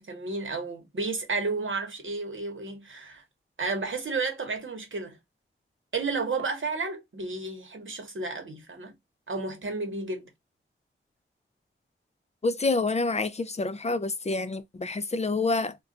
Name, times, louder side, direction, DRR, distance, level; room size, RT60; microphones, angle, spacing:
voice 1, 0.0-3.2 3.6-5.2 5.9-8.9 9.3-10.3, right 3 dB, 70° right, 1.0 m, -32 dB
voice 2, 12.4-15.8, left 3 dB, 30° left, 0.4 m, -27 dB
2.4 x 2.2 x 3.7 m
cardioid pair, 50°, 21 cm